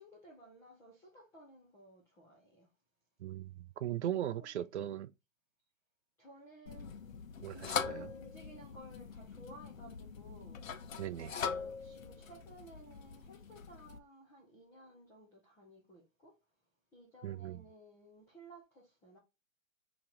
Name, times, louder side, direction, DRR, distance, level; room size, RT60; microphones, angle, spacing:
voice 1, 0.0-2.7 4.0-4.2 4.6-4.7 6.2-6.9 7.5-10.8 11.2-16.4 16.9-19.2, right 1 dB, 5° left, 0.5 m, -56 dB
voice 2, 3.2-5.1 7.4-8.1 11.0-11.3 17.2-17.6, right 11 dB, 60° right, 0.5 m, -38 dB
sound 1, 6.7-14.0, left 6 dB, 80° left, 0.8 m, -42 dB
3.0 x 2.9 x 3.8 m
hypercardioid pair, 155°, 39 cm